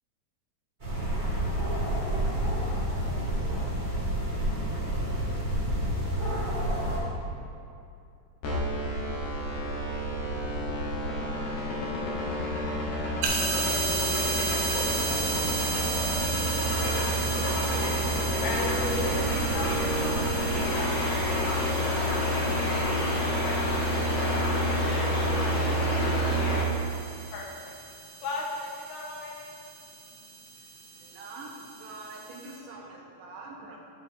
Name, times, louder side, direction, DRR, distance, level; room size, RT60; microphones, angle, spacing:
sound 1, 0.8-7.0, right 1 dB, 30° right, 0.8 m, -29 dB
sound 2, 8.4-26.6, equal, 65° left, 2.5 m, -28 dB
sound 3, 13.2-32.6, right 4 dB, 70° right, 1.6 m, -35 dB
voice 1, 17.7-25.7 26.8-29.6 30.7-30.9, left 3 dB, 90° left, -1 dB, 2.7 m, -39 dB
voice 2, 25.3-26.5 31.0-33.8, right 2 dB, 90° right, -2 dB, 2.7 m, -42 dB
11.5 x 5.6 x 3.6 m, 2.5 s
omnidirectional pair, 3.7 m